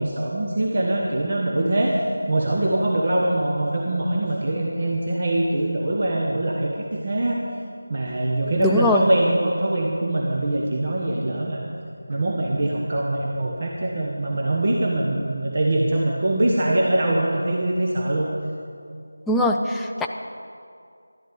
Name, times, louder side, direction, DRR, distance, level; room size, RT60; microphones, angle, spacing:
voice 1, 0.0-1.9 2.3-6.7 7.0-7.4 7.9-11.7 12.1-18.3, right 1 dB, 40° right, -2 dB, 1.2 m, -23 dB
voice 2, 8.6-9.1 19.3-20.1, left 1 dB, 5° left, 2 dB, 0.3 m, -21 dB
12.5 x 11.5 x 5.3 m, 2.4 s
figure-of-eight pair, 170°, 0 cm